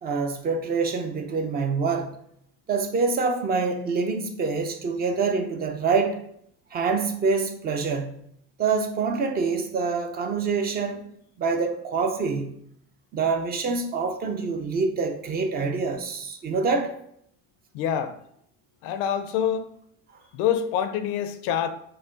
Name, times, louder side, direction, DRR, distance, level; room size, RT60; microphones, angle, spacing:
voice 1, 0.0-2.1 2.7-6.2 6.7-8.2 8.6-11.0 11.4-12.6 13.1-16.9, right 4 dB, 30° right, 0.6 m, -26 dB
voice 2, 17.7-18.2 18.8-19.7 20.3-21.7, left 9 dB, 75° left, 0.6 m, -26 dB
5.8 x 2.1 x 3.7 m
cardioid pair, 125°, 30 cm